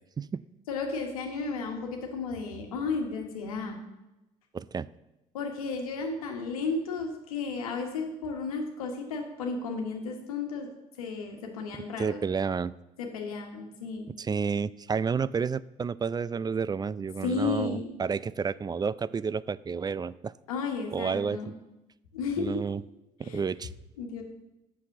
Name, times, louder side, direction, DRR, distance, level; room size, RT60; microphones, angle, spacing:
voice 1, 0.7-3.8 5.3-10.7 11.0-12.2 13.0-14.1 17.2-17.9 20.5-21.5 22.1-22.6 23.2-23.4 24.0-24.2, left 4 dB, 85° left, 2 dB, 1.4 m, -33 dB
voice 2, 4.5-4.9 12.0-12.7 14.2-20.3 20.9-21.4 22.4-22.8 23.2-23.7, right 5 dB, 20° right, 19 dB, 0.3 m, -30 dB
7.5 x 6.1 x 7.1 m, 0.97 s
hypercardioid pair, 55°, 18 cm